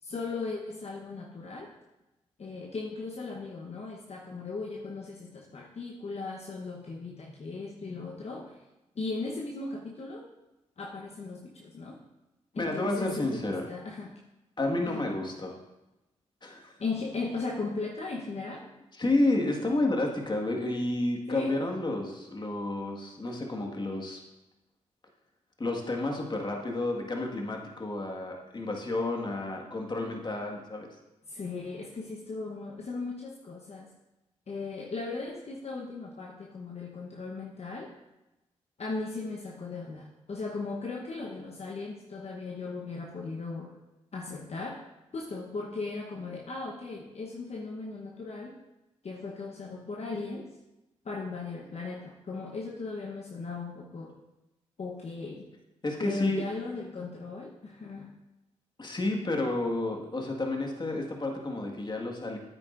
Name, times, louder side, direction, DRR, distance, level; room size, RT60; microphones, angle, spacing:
voice 1, 0.0-1.7 2.4-8.6 8.9-10.3 10.8-12.0 12.5-14.1 14.8-15.1 16.8-18.6 21.3-21.6 31.3-33.9 34.5-37.9 38.8-43.8 44.1-44.8 45.1-48.6 49.0-50.5 51.0-54.2 54.8-55.5 56.0-58.1, left 3 dB, 55° left, -2 dB, 1.1 m, -37 dB
voice 2, 12.6-13.6 14.6-15.6 16.4-16.7 19.0-24.2 25.6-30.9 55.8-56.4 58.8-62.4, left 2 dB, 35° left, 1 dB, 1.8 m, -30 dB
9.5 x 8.8 x 2.6 m, 0.97 s
supercardioid pair, 45°, 13 cm